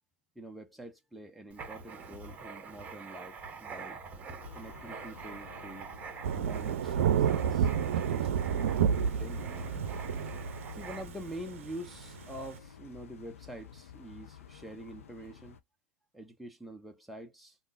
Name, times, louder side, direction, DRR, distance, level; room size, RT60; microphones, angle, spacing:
voice 1, 0.4-4.0 4.5-5.9 6.3-9.5 10.7-15.6 16.1-17.6, right 1 dB, ahead, 0.5 m, -46 dB
Writing, 1.5-11.3, right 5 dB, 20° right, 1.0 m, -46 dB
Traffic in Rome, 4.4-15.6, left 9 dB, 70° left, 0.7 m, -51 dB
Thunder / Rain, 6.2-12.6, right 8 dB, 65° right, 0.6 m, -30 dB
3.4 x 2.6 x 2.5 m
hypercardioid pair, 115°, 8 cm